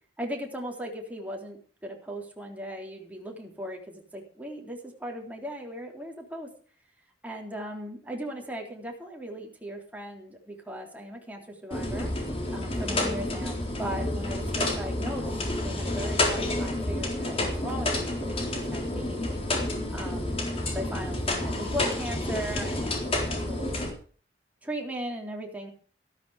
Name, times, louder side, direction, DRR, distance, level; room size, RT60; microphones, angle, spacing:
voice 1, 0.2-1.6 1.8-6.5 7.2-12.1 12.5-15.3 15.6-19.4 19.9-20.4 20.7-23.8 24.6-25.7, equal, 10° right, 0 dB, 3.7 m, -38 dB
sound 1, 11.7-23.9, left 1 dB, 35° left, 4.0 m, -29 dB
13.5 x 13.0 x 5.0 m, 0.42 s
head